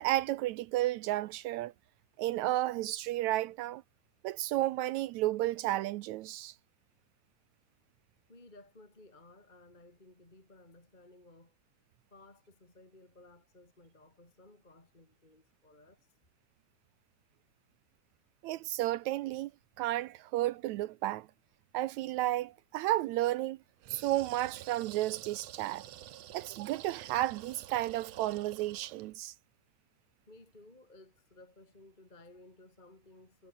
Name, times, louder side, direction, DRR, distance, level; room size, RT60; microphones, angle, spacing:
voice 1, 0.0-1.7 2.2-3.8 4.2-6.5 18.4-19.5 19.8-21.3 21.7-23.6 23.9-25.8 26.3-29.3, right 15 dB, 80° right, 1.7 m, -32 dB
voice 2, 8.3-11.6 12.1-16.1 30.3-33.5, left 2 dB, 15° left, 3.6 m, -58 dB
sound 1, 23.8-29.1, right 11 dB, 60° right, 2.1 m, -49 dB
omnidirectional pair, 3.8 m